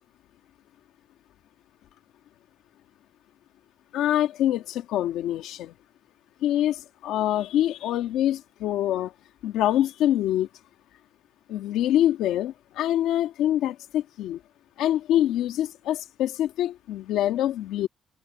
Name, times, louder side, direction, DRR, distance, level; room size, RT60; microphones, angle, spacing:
voice 1, 3.9-5.7 6.4-9.1 9.4-10.5 11.5-14.4 14.8-17.9, left 12 dB, 90° left, 1.6 m, -25 dB
cardioid pair, 90°, 0 cm